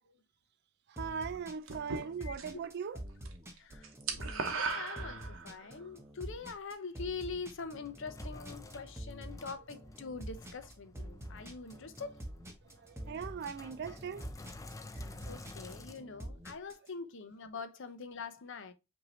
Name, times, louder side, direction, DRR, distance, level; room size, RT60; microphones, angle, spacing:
voice 1, 0.9-3.0 5.7-5.8 11.8-11.9 12.7-14.3 15.2-15.3 16.9-17.0, right 6 dB, 50° right, 0.4 m, -40 dB
sound 1, 1.0-16.9, right 1 dB, 10° right, 0.8 m, -46 dB
sound 2, 1.7-2.7 3.0-3.3 3.6-5.7, right 4 dB, 65° right, 0.9 m, -37 dB
voice 2, 2.2-2.6 3.5-12.2 14.9-18.7, left 4 dB, 60° left, 0.6 m, -44 dB
Sink (filling or washing), 7.1-15.9, left 2 dB, 15° left, 0.4 m, -51 dB
5.4 x 2.7 x 3.0 m
head